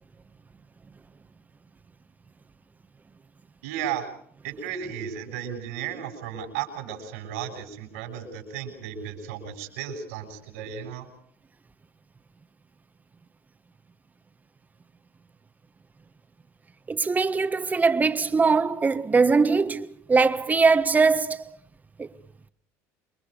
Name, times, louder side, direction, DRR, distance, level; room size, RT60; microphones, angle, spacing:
voice 1, 3.6-4.1 4.4-11.1, right 8 dB, 90° right, 6.8 m, -34 dB
voice 2, 16.9-21.6 22.0-22.1, right 4 dB, 20° right, 1.5 m, -21 dB
28.0 x 22.5 x 5.2 m
supercardioid pair, 90°, 8 cm